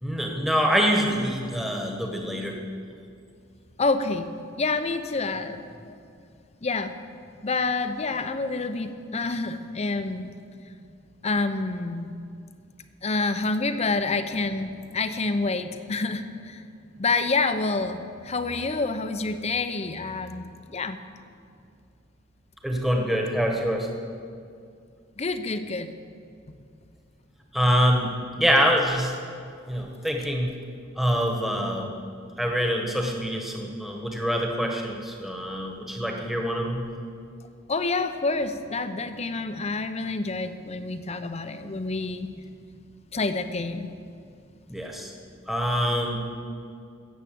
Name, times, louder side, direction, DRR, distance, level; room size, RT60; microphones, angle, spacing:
voice 1, 0.0-2.6 22.6-23.9 27.5-29.2 29.7-30.5 31.0-32.0 32.4-36.9 44.7-45.1 45.5-46.2, equal, ahead, 1 dB, 1.4 m, -25 dB
voice 2, 3.8-4.3 4.6-6.0 6.6-7.0 7.4-10.3 11.2-12.1 13.0-16.6 17.0-21.0 25.2-25.9 37.7-42.3 43.1-43.9, left 3 dB, 35° left, 9 dB, 0.7 m, -28 dB
15.5 x 7.7 x 7.8 m, 2.3 s
head